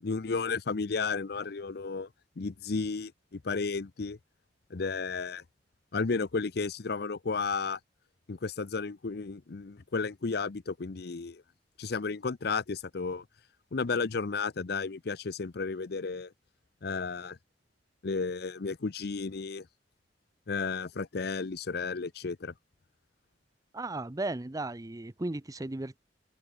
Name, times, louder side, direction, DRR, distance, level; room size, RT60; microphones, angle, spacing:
voice 1, 0.0-2.1 2.4-4.2 4.7-5.4 5.9-7.8 8.3-11.4 11.8-13.2 13.7-16.3 16.8-17.4 18.0-19.7 20.5-22.5, left 4 dB, 60° left, 0.6 m, -33 dB
voice 2, 23.7-26.0, right 2 dB, 20° right, 0.6 m, -35 dB
head